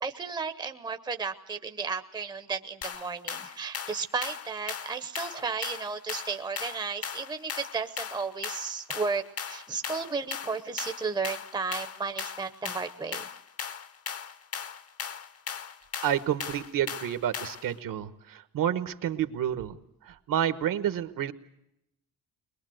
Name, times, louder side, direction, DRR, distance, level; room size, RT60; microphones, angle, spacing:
voice 1, 0.0-13.3, right 5 dB, 10° right, 8 dB, 0.8 m, -34 dB
sound 1, 2.8-17.7, left 7 dB, 40° left, 0.9 m, -38 dB
voice 2, 16.0-21.3, right 10 dB, 60° right, 11 dB, 1.3 m, -30 dB
22.0 x 22.0 x 7.8 m, 0.81 s
cardioid pair, 175°, 37 cm